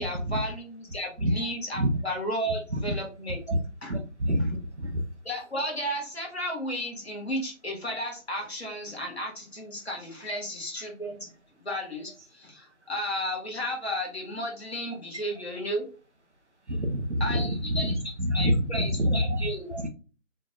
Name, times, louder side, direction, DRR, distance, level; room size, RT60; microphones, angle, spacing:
voice 1, 0.0-3.4 3.8-3.9 4.4-4.5 5.3-11.3 11.6-15.8 17.2-18.0 18.3-19.9, equal, 50° left, 1.8 m, -33 dB
voice 2, 3.9-5.0 16.7-17.4 17.7-18.0 18.3-19.9, equal, 55° right, 1.1 m, -27 dB
4.5 x 3.8 x 2.4 m
figure-of-eight pair, 170°, 40 cm